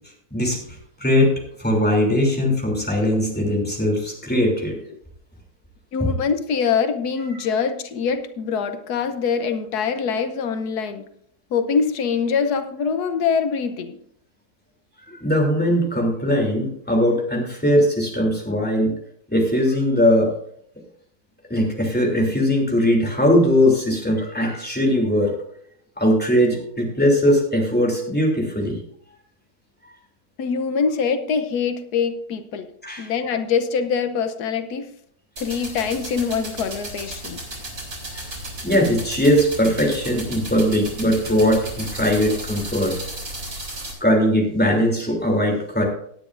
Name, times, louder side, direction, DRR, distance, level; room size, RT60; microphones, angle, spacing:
voice 1, 1.0-1.3 1.6-4.7 6.0-6.1 15.1-18.9 19.3-20.3 21.5-25.3 26.0-28.8 32.8-33.1 38.1-42.9 44.0-45.8, equal, 5° left, -1 dB, 3.0 m, -20 dB
voice 2, 5.9-11.1 11.5-14.0 30.4-32.7 33.0-34.9 35.4-37.4, left 6 dB, 90° left, 9 dB, 1.4 m, -24 dB
sound 1, 35.4-43.9, right 1 dB, 85° right, 4.1 m, -34 dB
18.0 x 9.9 x 2.6 m, 0.67 s
omnidirectional pair, 1.6 m